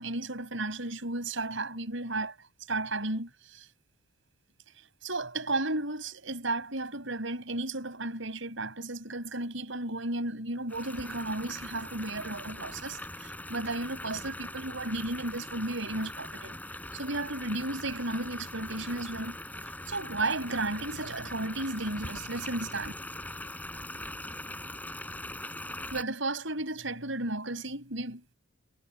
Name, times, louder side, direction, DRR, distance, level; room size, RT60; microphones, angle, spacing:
voice 1, 0.0-2.4 2.7-3.7 5.0-16.6 16.9-19.4 19.6-22.9 25.9-28.3, right 2 dB, 70° right, 8.0 m, -34 dB
sound 1, 10.7-26.0, left 1 dB, 10° left, 7.7 m, -41 dB
head